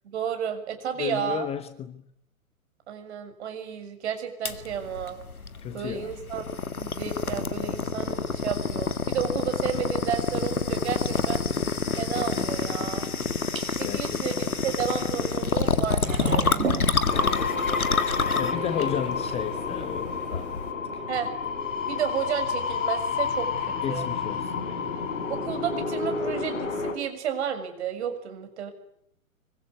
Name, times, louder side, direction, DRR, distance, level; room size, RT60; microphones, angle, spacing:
voice 1, 0.0-1.5 2.9-5.1 5.7-6.4 6.8-11.4 12.0-13.1 13.8-16.4 18.7-18.9 21.1-21.3 21.9-24.1 25.3-28.7, right 8 dB, 50° right, 6.9 m, -32 dB
voice 2, 1.0-2.0 5.6-6.1 11.5-11.7 12.3-12.8 13.8-14.2 17.1-17.8 18.4-21.0 23.8-25.0, left 9 dB, 15° left, 1.1 m, -34 dB
sound 1, 4.5-20.7, left 4 dB, 75° left, 2.1 m, -28 dB
sound 2, 11.7-19.6, right 4 dB, 65° right, 6.4 m, -37 dB
sound 3, 17.0-26.9, left 5 dB, 60° left, 5.9 m, -30 dB
26.0 x 23.5 x 9.7 m
figure-of-eight pair, 115°, 43 cm